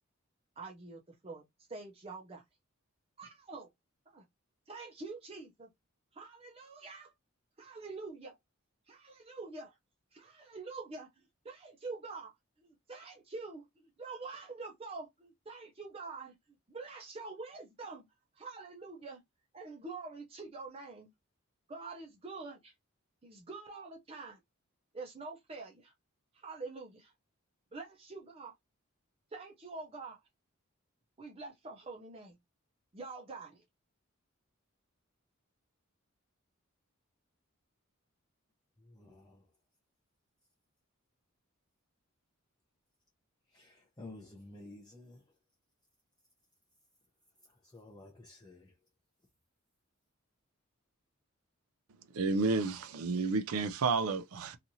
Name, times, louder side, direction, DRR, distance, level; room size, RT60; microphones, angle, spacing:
voice 1, 0.6-1.4 1.7-2.4 3.2-3.7 4.1-4.2 4.7-5.7 6.1-7.1 7.6-8.4 8.9-9.7 10.1-16.4 16.7-18.1 18.4-19.2 19.5-21.1 21.7-22.7 23.2-24.4 24.9-25.9 26.3-27.1 27.7-28.5 29.3-30.2 31.2-32.4 32.9-33.6, right 3 dB, 25° right, 0.5 m, -46 dB
voice 2, 38.9-39.4 43.5-45.2 47.7-48.7, left 2 dB, 20° left, 0.6 m, -51 dB
voice 3, 52.1-54.6, right 4 dB, 90° right, 0.5 m, -31 dB
2.8 x 2.5 x 2.6 m
head